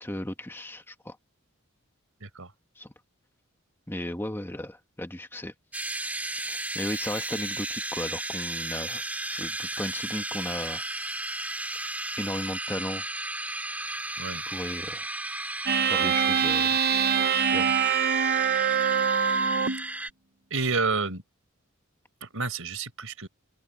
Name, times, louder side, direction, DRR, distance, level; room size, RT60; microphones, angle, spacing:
voice 1, 0.0-1.2 2.8-2.9 3.9-5.5 6.4-10.8 12.2-13.0 14.4-15.1 15.8-16.8 17.3-17.6, left 1 dB, 10° left, 1.4 m, -35 dB
sound 1, 5.7-20.1, right 2 dB, 10° right, 2.3 m, -34 dB
sound 2, 15.7-19.9, right 7 dB, 45° right, 0.7 m, -24 dB
voice 2, 20.5-21.2 22.2-23.3, right 4 dB, 75° right, 4.2 m, -29 dB
open air
head